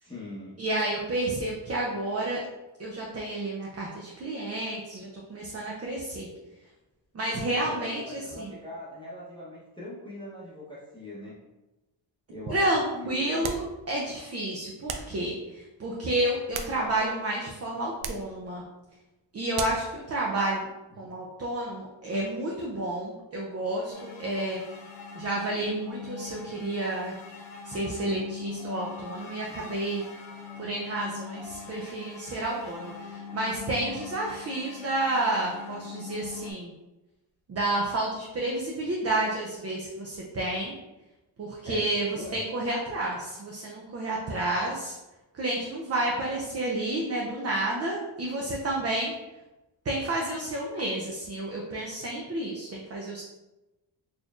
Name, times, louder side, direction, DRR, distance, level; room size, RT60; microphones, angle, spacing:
voice 1, 0.0-0.6 7.7-11.3 12.3-13.5 21.0-21.1 41.6-42.4, left 2 dB, 10° left, -8 dB, 0.8 m, -41 dB
voice 2, 0.6-2.5 2.8-6.3 7.1-8.5 12.5-13.6 13.9-18.6 19.3-20.7 21.0-24.6 25.1-27.1 27.6-30.0 30.6-36.7 37.5-40.7 41.4-45.0 45.3-49.1 49.8-53.2, right 1 dB, 35° right, -3 dB, 0.4 m, -30 dB
sound 1, 13.4-13.8 14.9-15.2 16.3-17.2 18.0-18.3 19.5-19.9, right 5 dB, 80° right, 0.5 m, -36 dB
sound 2, 23.9-36.5, left 6 dB, 75° left, 0.8 m, -42 dB
4.2 x 3.0 x 2.4 m, 1.0 s
wide cardioid pair, 155°, 48 cm